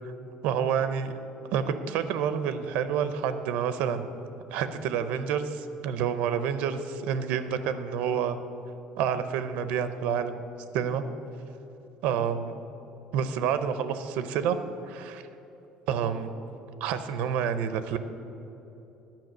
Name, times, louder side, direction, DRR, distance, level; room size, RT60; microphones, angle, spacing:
voice 1, 0.4-1.1 1.5-4.1 4.5-8.4 9.0-10.4 10.7-11.0 12.0-12.5 13.1-14.6 14.9-15.2 15.9-16.3 16.8-18.0, right 8 dB, 70° right, 11 dB, 0.6 m, -28 dB
10.5 x 5.8 x 7.7 m, 3.0 s
cardioid pair, 165°, 2 cm